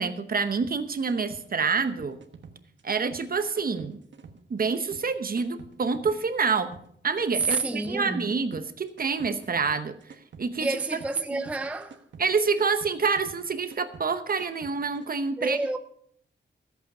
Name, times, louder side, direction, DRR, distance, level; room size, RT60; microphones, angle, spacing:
voice 1, 0.0-2.2 2.8-4.0 4.5-6.7 7.0-10.0 10.4-10.7 11.3-11.4 12.2-15.6, right 5 dB, 50° right, 0.9 m, -27 dB
sound 1, 0.6-15.1, right 5 dB, 70° right, 1.2 m, -48 dB
voice 2, 7.4-8.3 10.6-12.0 15.4-15.8, right 3 dB, 5° right, 0.4 m, -29 dB
14.0 x 8.3 x 5.4 m
wide cardioid pair, 155°, 20 cm